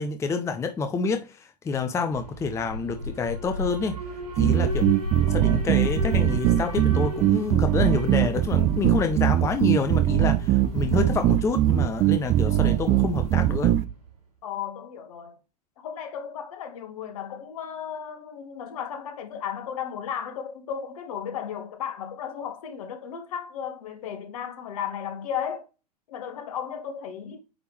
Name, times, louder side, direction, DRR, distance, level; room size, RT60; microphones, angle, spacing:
voice 1, 0.0-4.0 4.4-4.9 5.3-13.7, left 4 dB, 15° left, 0.7 m, -28 dB
Alarm, 2.1-14.1, equal, 75° right, 3.9 m, -35 dB
sound 1, 4.4-13.8, right 13 dB, 35° right, 0.6 m, -21 dB
voice 2, 14.4-15.4 15.8-25.6 26.1-27.4, left 8 dB, 60° left, 1.5 m, -34 dB
8.7 x 3.5 x 3.1 m
figure-of-eight pair, 100°, 21 cm